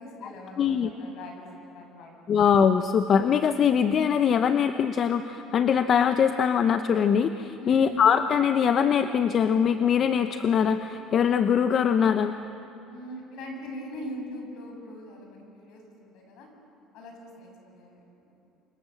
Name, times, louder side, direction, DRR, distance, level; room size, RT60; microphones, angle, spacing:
voice 1, 0.0-2.1 7.6-7.9 12.9-16.5 16.9-18.3, equal, 70° left, 2 dB, 7.1 m, -41 dB
voice 2, 0.6-0.9 2.3-12.3, left 7 dB, 40° left, 9 dB, 0.9 m, -22 dB
29.0 x 25.5 x 7.8 m, 2.9 s
cardioid pair, 130°, 0 cm